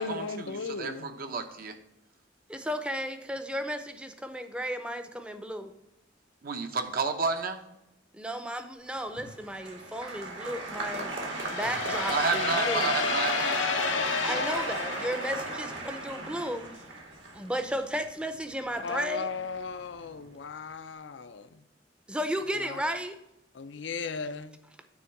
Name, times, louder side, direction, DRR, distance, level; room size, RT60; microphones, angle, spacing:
voice 1, 0.0-1.2 18.8-21.6 22.5-22.8 23.5-24.6, left 5 dB, 70° left, 11 dB, 0.5 m, -37 dB
voice 2, 0.7-1.7 6.4-7.6 12.1-13.9 14.2-14.5, right 4 dB, 50° right, 6 dB, 0.8 m, -31 dB
voice 3, 2.5-5.7 8.1-12.9 14.2-16.7 17.3-19.3 22.1-23.2, equal, 5° right, 8 dB, 0.6 m, -34 dB
Applause, 9.0-19.4 19.7-20.3, right 2 dB, 70° right, 1.9 m, -36 dB
sound 1, 11.3-16.0, left 5 dB, 90° left, 0.8 m, -31 dB
9.6 x 3.5 x 5.9 m, 0.86 s
head